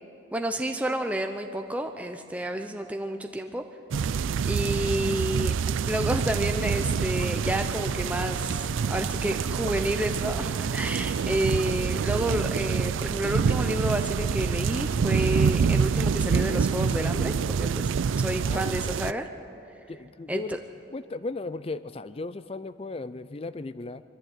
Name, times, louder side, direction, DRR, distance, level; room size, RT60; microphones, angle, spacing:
voice 1, 0.3-3.6 4.4-5.5 5.9-17.9 18.2-19.3 20.3-20.4, right 1 dB, 5° right, 5 dB, 0.6 m, -30 dB
sound 1, 3.9-19.1, right 6 dB, 85° right, 0.4 m, -26 dB
sound 2, 6.4-11.4, right 2 dB, 65° right, 1.0 m, -44 dB
voice 2, 18.4-19.0 19.9-20.6 20.9-24.0, left 3 dB, 30° left, 14 dB, 0.4 m, -36 dB
22.5 x 14.5 x 8.0 m, 2.6 s
head